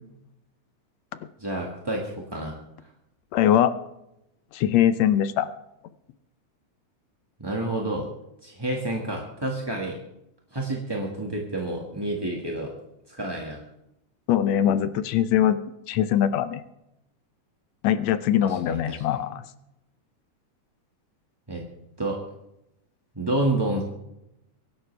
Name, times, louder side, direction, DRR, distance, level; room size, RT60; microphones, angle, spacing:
voice 1, 1.4-2.5 7.4-8.1 8.4-10.0 10.5-12.7 13.1-13.6 18.4-19.2 21.5-21.6 22.0-22.2 23.1-23.8, right 1 dB, 15° right, -1 dB, 1.1 m, -29 dB
voice 2, 3.3-3.7 4.5-5.5 14.3-15.6 15.9-16.6 17.8-19.4, left 10 dB, 70° left, 13 dB, 1.8 m, -22 dB
24.5 x 11.5 x 3.4 m, 0.84 s
omnidirectional pair, 3.5 m